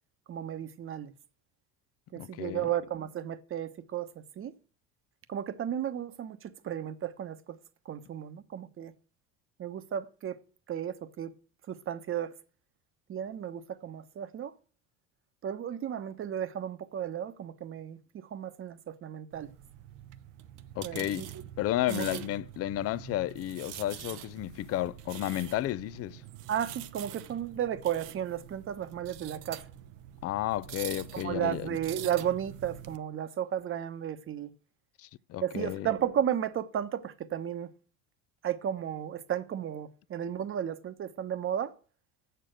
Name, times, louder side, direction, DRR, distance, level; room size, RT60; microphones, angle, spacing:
voice 1, 0.3-1.1 2.1-4.6 5.3-7.6 7.8-8.9 9.6-10.4 10.7-11.3 11.7-12.3 13.1-14.5 15.4-19.5 20.8-21.3 21.9-22.2 26.5-29.7 31.2-34.5 35.4-37.7 38.4-41.7, right 10 dB, 40° right, 1.0 m, -34 dB
voice 2, 2.2-2.7 20.8-21.3 21.6-26.2 30.2-31.7 35.0-35.9, left 14 dB, 45° left, 0.5 m, -32 dB
sound 1, 19.3-33.0, right 12 dB, 75° right, 0.8 m, -45 dB
7.4 x 6.8 x 7.8 m
supercardioid pair, 95°, 33 cm